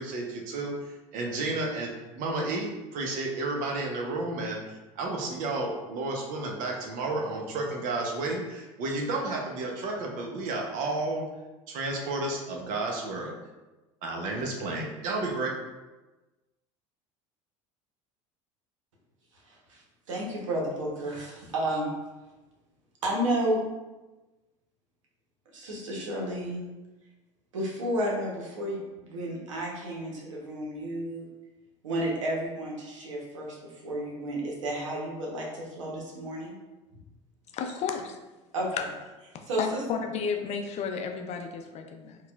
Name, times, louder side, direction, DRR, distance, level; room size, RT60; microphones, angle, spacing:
voice 1, 0.0-11.3 11.7-13.3 14.0-15.6, right 2 dB, 60° right, 0 dB, 0.8 m, -32 dB
voice 2, 19.4-19.8 20.1-21.9 23.0-23.6 25.5-26.7 27.5-31.3 31.8-36.6 38.5-38.9 39.5-40.0, right 1 dB, 90° right, -2 dB, 0.9 m, -32 dB
voice 3, 37.5-38.2 38.7-38.8 39.3-42.2, left 6 dB, 45° left, 4 dB, 0.5 m, -33 dB
4.1 x 2.4 x 2.3 m, 1.1 s
hypercardioid pair, 80°, 16 cm